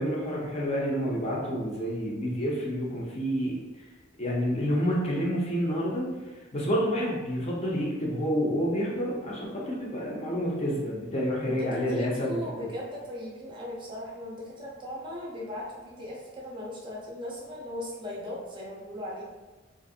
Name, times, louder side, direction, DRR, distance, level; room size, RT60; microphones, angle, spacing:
voice 1, 0.0-3.6 4.2-6.1 6.5-12.4, equal, 30° left, -4 dB, 0.6 m, -29 dB
voice 2, 11.4-19.2, left 1 dB, 25° right, -4 dB, 0.5 m, -38 dB
3.0 x 2.5 x 2.6 m, 1.2 s
head